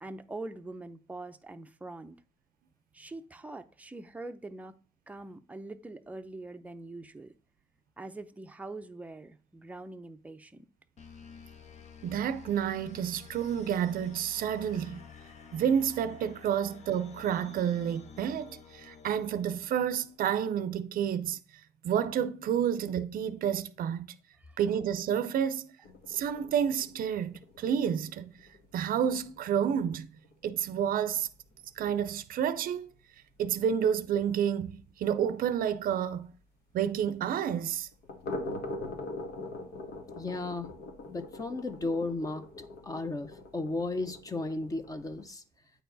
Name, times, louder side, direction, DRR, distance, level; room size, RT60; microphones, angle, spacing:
voice 1, 0.0-2.2 2.9-4.8 5.1-7.3 8.0-10.7 24.4-24.6, right 2 dB, 10° right, 0.6 m, -43 dB
sound 1, 11.0-20.4, left 6 dB, 40° left, 1.0 m, -51 dB
voice 2, 12.0-15.0 15.5-21.4 21.8-24.2 24.6-25.8 26.1-28.4 28.7-30.1 30.4-31.3 31.8-32.9 33.4-36.3 36.7-37.9, right 8 dB, 60° right, 0.6 m, -30 dB
sound 2, 25.8-31.7 32.0-32.1 32.5-32.6 33.0-33.1 33.4-33.5 36.3-36.4 37.9-45.3, left 2 dB, 70° left, 1.4 m, -43 dB
voice 3, 40.2-40.7 41.1-42.4 42.8-45.4, left 2 dB, 20° left, 0.7 m, -34 dB
9.0 x 4.6 x 4.0 m
cardioid pair, 110°, 17 cm